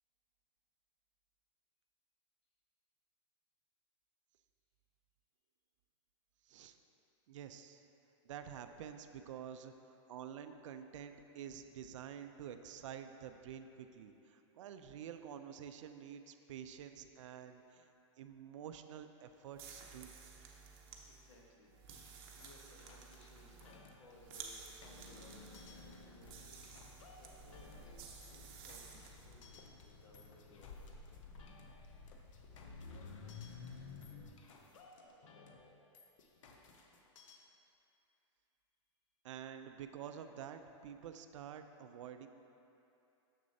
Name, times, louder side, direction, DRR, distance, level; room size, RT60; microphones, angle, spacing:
voice 1, 6.5-6.8 7.3-7.8 8.2-17.9 18.2-20.1 39.2-42.3, right 8 dB, 75° right, 8 dB, 0.4 m, -49 dB
sound 1, 19.5-29.4, right 5 dB, 50° right, 0.7 m, -54 dB
voice 2, 21.1-31.1, left 2 dB, 60° left, -1 dB, 1.0 m, -63 dB
sound 2, 21.9-37.4, left 3 dB, 75° left, 0.7 m, -59 dB
sound 3, 25.6-34.3, left 4 dB, 40° left, 0.5 m, -54 dB
6.7 x 6.2 x 2.7 m, 2.8 s
supercardioid pair, 160°, 16 cm